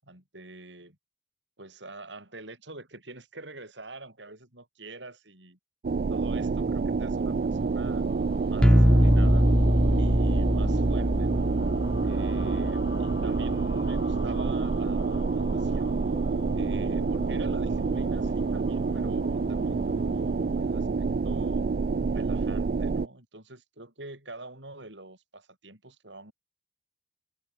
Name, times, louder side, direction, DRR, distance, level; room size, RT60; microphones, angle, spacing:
voice 1, 0.0-1.0 1.6-5.6 5.9-8.1 8.4-9.5 10.0-11.6 12.0-16.0 16.5-21.7 22.1-26.3, right 2 dB, 80° right, 7.8 m, -45 dB
sound 1, 5.8-23.1, right 4 dB, 50° right, 0.4 m, -28 dB
sound 2, 7.0-21.4, left 2 dB, 75° left, 3.9 m, -45 dB
sound 3, 8.6-14.4, equal, 5° left, 1.1 m, -24 dB
head